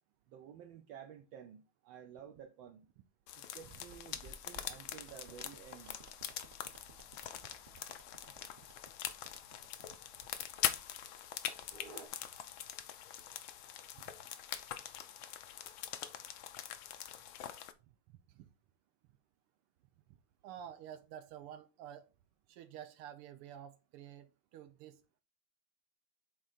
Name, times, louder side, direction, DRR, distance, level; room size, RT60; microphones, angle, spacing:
voice 1, 0.3-2.8 3.4-6.0, right 8 dB, 70° right, 1.4 m, -53 dB
sound 1, 3.3-17.7, left 10 dB, 75° left, 1.4 m, -43 dB
sound 2, 3.6-12.1, right 2 dB, 40° right, 0.7 m, -58 dB
voice 2, 20.4-22.1 22.5-25.2, right 10 dB, 90° right, 1.6 m, -50 dB
8.8 x 3.7 x 4.2 m
omnidirectional pair, 2.4 m